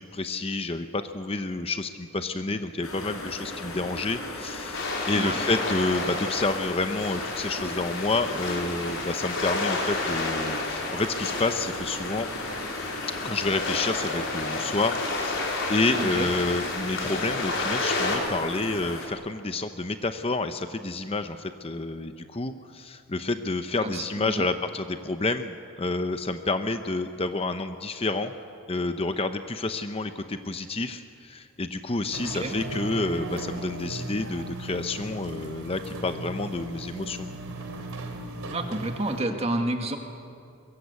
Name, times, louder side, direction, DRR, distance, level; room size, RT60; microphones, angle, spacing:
voice 1, 0.0-12.3 13.2-28.3 28.7-37.4, left 3 dB, 25° left, 8 dB, 0.7 m, -29 dB
sound 1, 2.8-19.1, left 2 dB, 80° left, 4.9 m, -37 dB
sound 2, 4.7-18.2, left 3 dB, 55° left, 5.0 m, -31 dB
voice 2, 16.0-16.3 23.8-24.5 32.2-32.6 38.5-40.0, right 1 dB, 30° right, 4 dB, 2.0 m, -30 dB
sound 3, 32.1-39.3, right 1 dB, 85° right, 2.9 m, -37 dB
23.0 x 22.5 x 8.4 m, 2.6 s
head